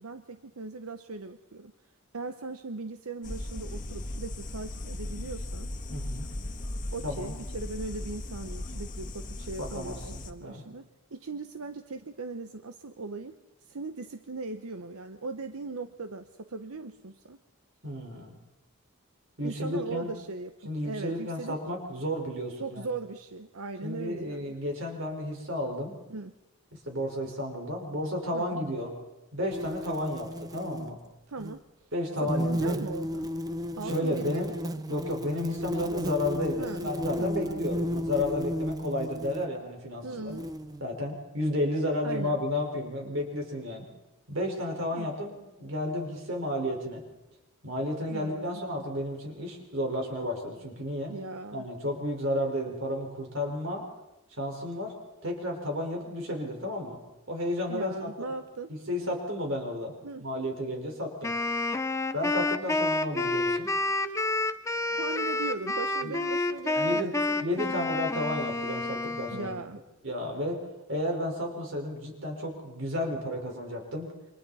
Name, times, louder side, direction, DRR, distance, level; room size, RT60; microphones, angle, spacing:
voice 1, 0.0-1.7 2.1-5.7 6.9-17.4 19.4-20.6 20.8-21.6 22.6-24.6 26.1-26.3 28.3-28.6 31.3-31.6 32.2-33.3 33.8-34.8 36.6-36.9 37.2-37.9 40.0-40.5 42.0-42.4 44.9-45.1 48.1-48.6 51.1-51.7 57.7-58.7 60.0-60.3 64.9-68.0 69.3-69.8, right 3 dB, 90° right, 8 dB, 0.9 m, -39 dB
sound 1, 3.2-10.3, left 1 dB, 40° left, 1.5 m, -37 dB
voice 2, 5.9-6.3 7.0-7.3 9.6-10.6 17.8-18.3 19.4-20.1 20.6-22.9 23.8-25.9 26.8-28.9 29.3-31.0 31.9-32.8 33.8-34.5 34.9-40.3 40.8-43.9 44.3-47.0 47.6-51.1 51.5-53.8 54.4-54.9 55.2-57.0 57.3-58.3 58.7-59.9 60.2-61.3 62.1-63.7 66.0-66.1 66.8-67.1 67.4-69.5 70.0-70.6 70.9-74.1, left 1 dB, 60° right, 1 dB, 4.8 m, -32 dB
sound 2, 29.5-30.9 31.4-31.6 32.3-39.5 40.3-40.8, equal, 15° right, 0.7 m, -33 dB
Wind instrument woodwind instrument, 61.2-69.6, left 2 dB, 15° left, 0.8 m, -29 dB
29.0 x 25.0 x 4.2 m, 0.99 s
head